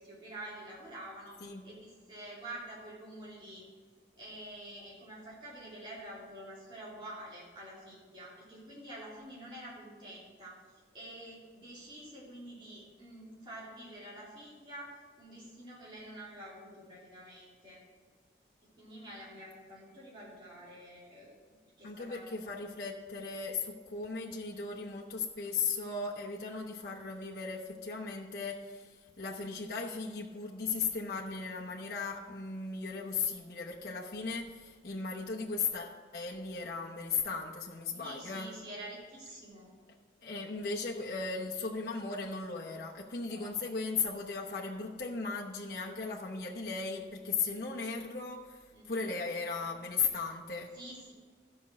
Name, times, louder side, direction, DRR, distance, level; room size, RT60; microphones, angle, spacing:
voice 1, 0.0-1.4 1.6-3.7 4.1-10.6 10.9-14.9 15.2-17.8 18.8-21.3 21.8-22.3 37.9-39.7 43.2-43.6 44.3-44.5 48.7-49.1 50.7-51.1, right 1 dB, 25° right, -7 dB, 3.3 m, -48 dB
voice 2, 21.8-38.5 40.2-50.7, left 4 dB, 55° left, -3 dB, 1.0 m, -37 dB
13.5 x 5.4 x 6.4 m, 1.5 s
head